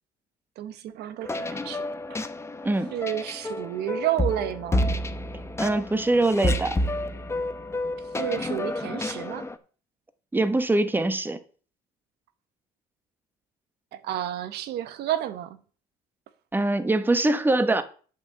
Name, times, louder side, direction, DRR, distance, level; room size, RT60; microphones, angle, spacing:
voice 1, 0.6-1.8 2.9-4.9 8.0-9.5 13.9-15.6, right 12 dB, 75° right, 0.9 m, -31 dB
sound 1, 1.2-9.6, left 1 dB, 15° left, 0.8 m, -30 dB
voice 2, 5.6-6.8 10.3-11.4 16.5-17.8, right 2 dB, 10° right, 1.1 m, -23 dB
8.0 x 5.8 x 7.5 m
cardioid pair, 110°, 17 cm